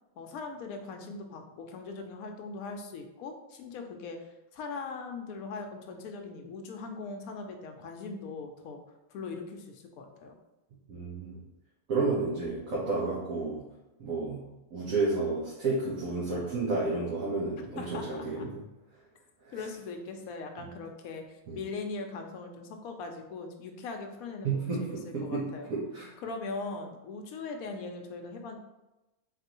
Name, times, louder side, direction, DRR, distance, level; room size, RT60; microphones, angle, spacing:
voice 1, 0.2-8.8 9.1-10.3 17.8-18.5 19.5-25.7 26.2-28.6, left 4 dB, 80° left, 4 dB, 1.0 m, -40 dB
voice 2, 10.9-11.4 11.9-13.7 14.0-18.6 19.4-19.7 21.5-21.6 24.4-26.1, right 3 dB, 65° right, -7 dB, 1.4 m, -31 dB
4.0 x 3.3 x 2.9 m, 0.99 s
omnidirectional pair, 1.5 m